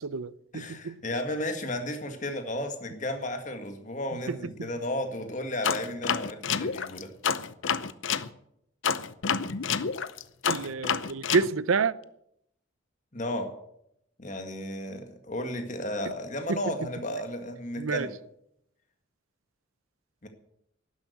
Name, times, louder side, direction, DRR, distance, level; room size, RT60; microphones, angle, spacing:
voice 1, 0.0-1.0 4.3-4.7 10.5-11.9 16.5-16.6 17.8-18.1, right 4 dB, 85° right, 0.6 m, -28 dB
voice 2, 0.5-7.1 13.1-13.5 14.2-18.1 20.2-20.3, left 1 dB, 35° left, 1.9 m, -33 dB
sound 1, 5.6-8.3 8.8-11.5, left 6 dB, 70° left, 0.7 m, -28 dB
12.0 x 11.0 x 8.1 m
head